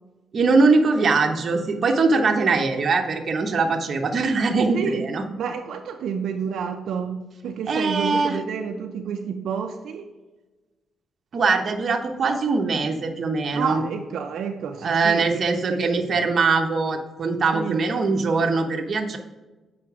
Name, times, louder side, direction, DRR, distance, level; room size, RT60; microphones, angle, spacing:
voice 1, 0.3-5.2 7.7-8.4 11.3-13.8 14.8-19.2, right 4 dB, 40° right, 3 dB, 1.0 m, -22 dB
voice 2, 5.4-10.1 13.5-15.4 15.7-16.1 17.5-17.8, right 6 dB, 75° right, 4 dB, 0.6 m, -29 dB
7.6 x 5.0 x 4.7 m, 1.2 s
cardioid pair, 155°, 0 cm